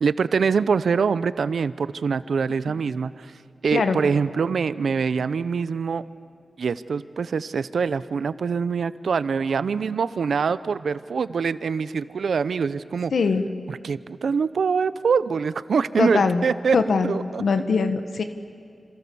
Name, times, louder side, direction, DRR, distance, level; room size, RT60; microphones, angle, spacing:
voice 1, 0.0-3.3 3.6-6.0 6.6-13.1 13.7-16.8 17.0-17.4, right 5 dB, 85° right, 15 dB, 0.7 m, -24 dB
voice 2, 13.1-13.4 16.0-16.4 16.7-17.1 17.4-18.2, left 4 dB, 85° left, 8 dB, 1.4 m, -21 dB
28.0 x 27.0 x 7.0 m, 2.4 s
cardioid pair, 55°, 0 cm